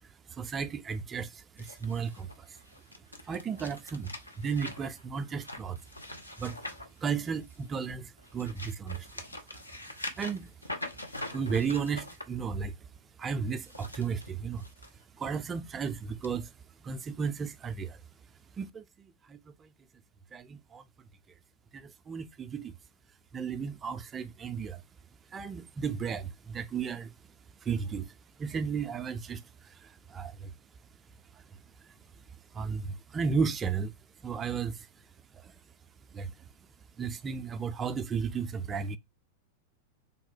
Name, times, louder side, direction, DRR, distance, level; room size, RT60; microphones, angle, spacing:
voice 1, 0.3-2.6 3.2-4.1 4.4-5.8 6.4-6.7 7.0-9.1 9.5-9.6 10.2-10.5 11.3-12.7 13.2-14.7 15.2-16.5 16.8-18.0 18.6-18.8 19.3-19.7 20.3-20.8 21.7-22.7 23.3-24.8 25.3-27.1 27.6-28.1 28.4-30.5 32.5-33.9 34.2-34.9 35.4-35.5 36.1-36.3 37.0-39.0, right 6 dB, 20° right, 0.3 m, -34 dB
sound 1, 1.6-7.7 8.2-12.2 13.5-14.9 15.3-15.6 16.2-16.3, left 1 dB, 85° left, 0.5 m, -43 dB
3.5 x 2.1 x 4.2 m
figure-of-eight pair, 90°, 0 cm